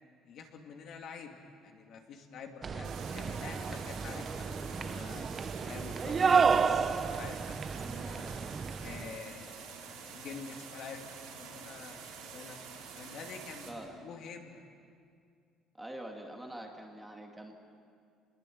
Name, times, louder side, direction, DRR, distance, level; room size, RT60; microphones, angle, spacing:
voice 1, 0.3-5.3 5.6-8.4 8.8-12.6 13.0-14.6, left 5 dB, 50° left, 3 dB, 2.3 m, -47 dB
sound 1, 2.6-9.1, right 5 dB, 25° right, 0.6 m, -31 dB
sound 2, 2.8-13.7, right 6 dB, 85° right, 5.4 m, -47 dB
voice 2, 15.8-17.5, right 1 dB, 5° right, 1 dB, 2.1 m, -44 dB
28.5 x 21.0 x 8.6 m, 2.2 s
cardioid pair, 180°, 0 cm